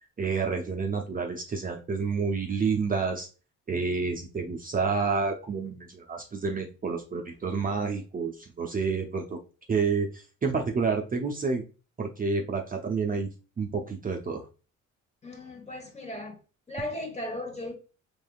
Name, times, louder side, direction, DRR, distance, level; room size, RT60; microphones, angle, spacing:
voice 1, 0.2-3.3 3.7-9.4 9.7-11.6 12.0-13.3 13.6-14.4, right 4 dB, 30° right, 0.6 m, -29 dB
voice 2, 15.2-16.4 16.7-17.7, left 1 dB, 20° left, 1.1 m, -36 dB
3.4 x 3.3 x 2.3 m
cardioid pair, 90°, 30 cm